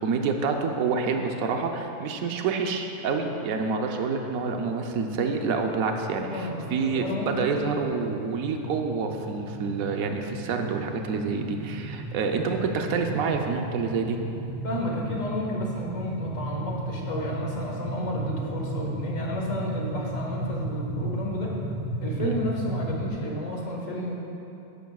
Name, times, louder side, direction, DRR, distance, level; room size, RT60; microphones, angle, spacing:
voice 1, 0.0-14.2 22.2-22.4, right 4 dB, 75° right, 4 dB, 1.2 m, -27 dB
sound 1, 4.3-23.1, right 1 dB, 25° right, 1.1 m, -35 dB
voice 2, 6.3-7.5 14.6-21.5 22.0-24.1, left 1 dB, 65° left, -2 dB, 1.9 m, -32 dB
13.5 x 10.5 x 2.3 m, 2.8 s
omnidirectional pair, 1.5 m